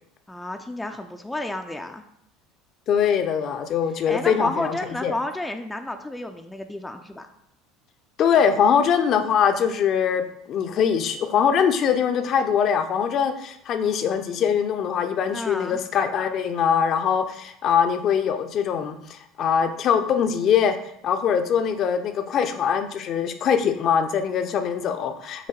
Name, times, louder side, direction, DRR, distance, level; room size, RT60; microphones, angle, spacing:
voice 1, 0.3-2.0 4.1-7.3 15.3-15.8, left 1 dB, 10° left, 4 dB, 0.5 m, -31 dB
voice 2, 2.9-4.7 5.0-5.1 8.2-20.8 21.0-25.5, left 7 dB, 45° left, 7 dB, 0.7 m, -22 dB
7.3 x 3.0 x 4.3 m, 0.75 s
figure-of-eight pair, 70°, 0 cm